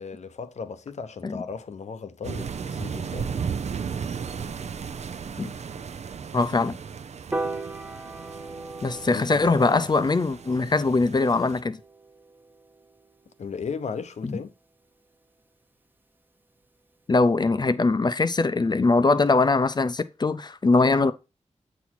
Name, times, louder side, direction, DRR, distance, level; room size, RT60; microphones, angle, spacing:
voice 1, 0.0-3.3 9.1-9.5 13.4-14.5, left 5 dB, 70° left, 0.7 m, -36 dB
sound 1, 2.2-11.6, right 6 dB, 65° right, 0.5 m, -35 dB
voice 2, 6.3-6.8 8.8-11.8 14.2-14.4 17.1-21.1, left 3 dB, 35° left, 0.5 m, -22 dB
Piano, 7.3-13.6, right 2 dB, 15° right, 0.8 m, -38 dB
8.2 x 4.1 x 4.4 m
wide cardioid pair, 95°, 12 cm